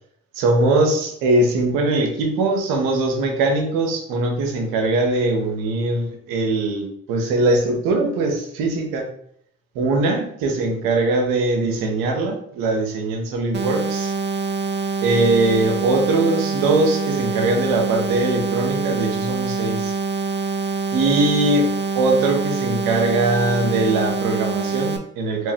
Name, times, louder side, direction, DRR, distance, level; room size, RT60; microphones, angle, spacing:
voice 1, 0.3-9.0 9.7-14.1 15.0-19.9 20.9-21.7 21.9-25.5, right 2 dB, 90° right, 2 dB, 0.8 m, -21 dB
sound 1, 13.5-25.0, right 4 dB, 35° right, 0.6 m, -25 dB
3.7 x 3.0 x 2.8 m, 0.69 s
supercardioid pair, 55°, 33 cm